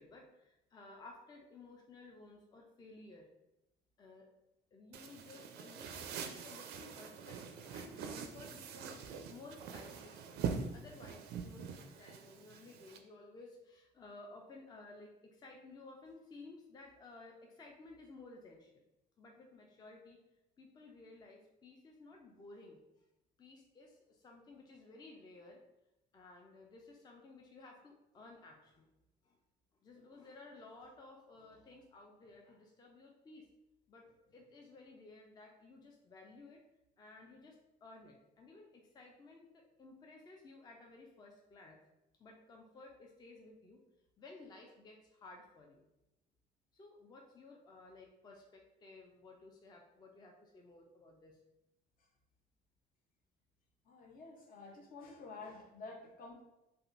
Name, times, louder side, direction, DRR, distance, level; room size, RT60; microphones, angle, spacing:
voice 1, 0.0-3.3 4.0-4.3 4.7-9.0 9.3-18.8 19.2-20.2 20.6-22.8 23.4-25.6 26.1-28.9 29.2-29.4 29.8-33.5 33.9-36.6 37.0-41.8 42.2-43.8 44.2-45.8 46.7-51.4, left 3 dB, 25° left, 1 dB, 0.4 m, -56 dB
sound 1, 4.9-13.0, right 6 dB, 75° right, 0.4 m, -44 dB
voice 2, 53.9-56.4, left 3 dB, 55° left, 1 dB, 0.7 m, -50 dB
3.4 x 2.5 x 2.5 m, 0.93 s
cardioid pair, 110°, 17 cm